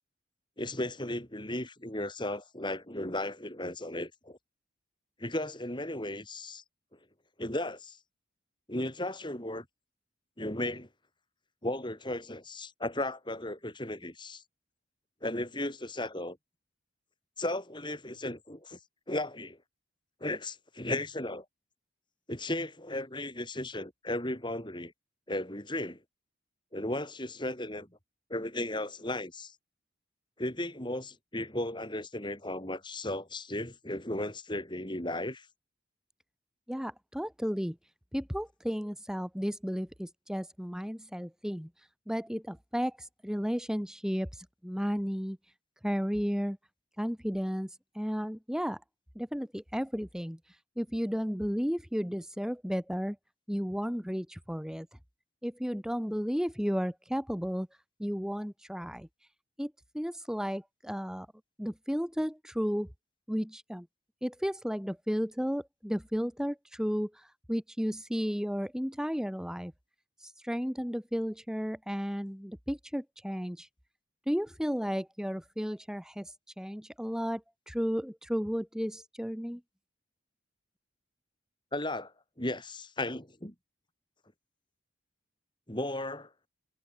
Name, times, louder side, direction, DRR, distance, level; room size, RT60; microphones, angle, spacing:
voice 1, 0.6-4.4 5.2-6.6 7.4-8.0 8.7-9.6 10.4-10.9 11.6-14.4 15.2-16.4 17.4-18.8 19.1-19.6 20.2-21.5 22.3-24.9 25.3-26.0 26.7-27.9 28.3-29.5 30.4-35.5 81.7-82.1 82.4-83.5 85.7-86.3, left 1 dB, 25° left, 5.7 m, -35 dB
voice 2, 36.7-37.8 38.1-45.4 45.8-46.6 47.0-48.8 49.2-53.2 53.5-54.9 55.4-57.7 58.0-59.1 59.6-61.3 61.6-62.9 63.3-63.9 64.2-69.7 70.2-73.7 74.3-79.6, equal, 5° right, 2.4 m, -33 dB
head